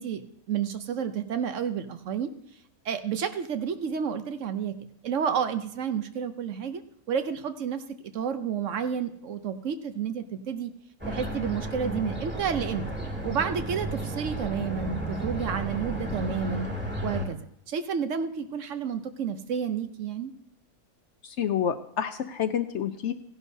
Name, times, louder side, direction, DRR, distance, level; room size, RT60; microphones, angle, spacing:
voice 1, 0.0-2.3 2.8-6.8 7.1-7.8 8.1-10.7 11.1-12.9 13.2-16.7 17.0-17.4 17.7-20.3, right 7 dB, 65° right, 9 dB, 1.0 m, -30 dB
sound 1, 11.0-17.3, right 1 dB, 5° right, 1.7 m, -33 dB
voice 2, 21.2-23.1, left 8 dB, 65° left, 10 dB, 0.8 m, -28 dB
16.5 x 11.0 x 2.7 m, 0.74 s
omnidirectional pair, 1.5 m